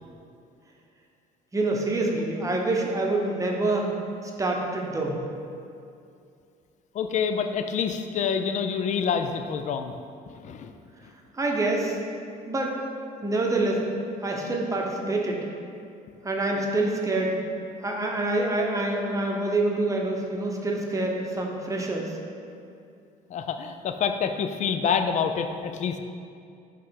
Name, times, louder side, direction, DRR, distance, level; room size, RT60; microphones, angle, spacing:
voice 1, 1.5-3.9 4.2-5.2 11.3-12.0 12.5-12.7 13.2-13.8 14.2-15.4 16.2-17.4 17.8-22.2, right 2 dB, 20° right, 0 dB, 0.8 m, -26 dB
voice 2, 6.9-9.9 10.3-10.7 23.3-26.0, left 6 dB, 45° left, 7 dB, 0.4 m, -27 dB
5.5 x 3.3 x 5.7 m, 2.5 s
cardioid pair, 110°, 17 cm